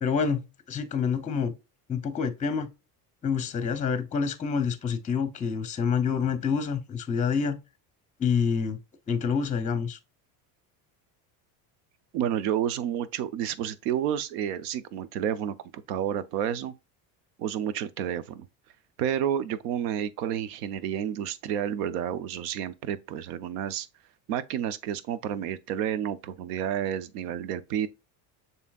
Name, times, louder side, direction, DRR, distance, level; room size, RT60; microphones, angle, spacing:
voice 1, 0.0-1.5 1.9-2.7 3.2-7.6 8.2-8.8 9.1-10.0, left 6 dB, 15° left, 0.6 m, -27 dB
voice 2, 12.1-16.7 17.4-18.5 19.0-23.9 24.3-27.9, right 9 dB, 90° right, 0.7 m, -30 dB
6.9 x 2.8 x 2.3 m
supercardioid pair, 105°, 45 cm